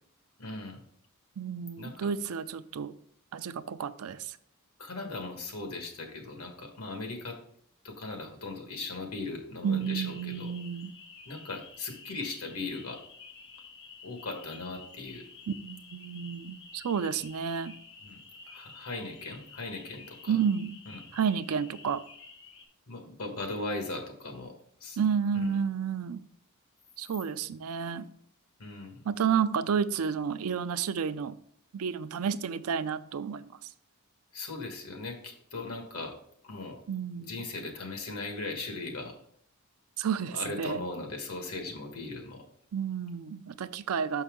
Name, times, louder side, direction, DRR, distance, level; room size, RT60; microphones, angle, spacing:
voice 1, 0.4-0.8 1.8-2.1 4.8-7.4 7.8-10.5 11.2-13.0 14.0-15.2 18.0-18.2 18.5-20.4 20.9-21.0 22.9-24.5 24.8-25.0 25.3-25.5 28.6-29.0 34.3-36.1 36.4-36.8 37.2-39.1 40.3-42.4, left 3 dB, 85° left, 1.4 m, -38 dB
voice 2, 1.4-2.9 3.3-4.4 9.6-10.9 15.5-17.7 20.3-20.8 21.1-22.0 25.0-26.2 27.0-28.1 29.0-31.4 31.7-33.5 36.9-37.3 40.0-40.8 42.7-44.2, right 7 dB, 80° right, 0.4 m, -31 dB
sound 1, 9.8-22.7, left 4 dB, 55° left, 1.1 m, -51 dB
6.1 x 5.5 x 3.6 m
head